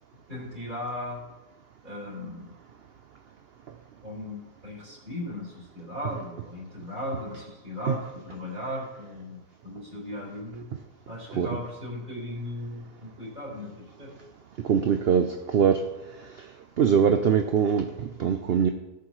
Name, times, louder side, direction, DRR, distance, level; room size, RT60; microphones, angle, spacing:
voice 1, 0.3-1.2 1.8-2.5 4.0-10.7 11.1-14.1, left 1 dB, 30° right, -6 dB, 3.9 m, -37 dB
voice 2, 14.6-15.8 16.8-18.7, right 7 dB, 65° right, 6 dB, 0.6 m, -23 dB
18.5 x 7.2 x 3.1 m, 1.0 s
omnidirectional pair, 1.7 m